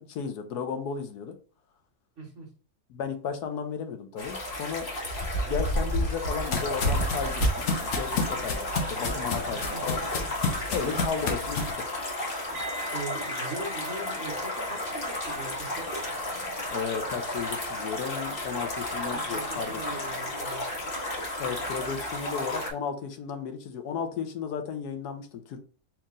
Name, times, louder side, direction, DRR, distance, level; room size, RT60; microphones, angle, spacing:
voice 1, 0.0-1.3 2.9-4.9 5.3-7.4 7.8-10.0 10.7-11.9 16.7-19.8 21.4-25.6, left 6 dB, 75° left, 6 dB, 1.2 m, -34 dB
voice 2, 2.2-2.5 9.5-10.3 10.8-11.1 12.9-16.0 19.1-20.6, right 3 dB, 50° right, 0 dB, 1.4 m, -40 dB
sound 1, 4.2-22.7, left 1 dB, 35° left, 1.4 m, -32 dB
sound 2, 5.6-11.7, left 4 dB, 60° left, 1.0 m, -32 dB
sound 3, 12.5-21.5 21.8-22.1, right 1 dB, 75° right, 1.4 m, -46 dB
4.5 x 2.9 x 3.7 m, 0.40 s
omnidirectional pair, 1.7 m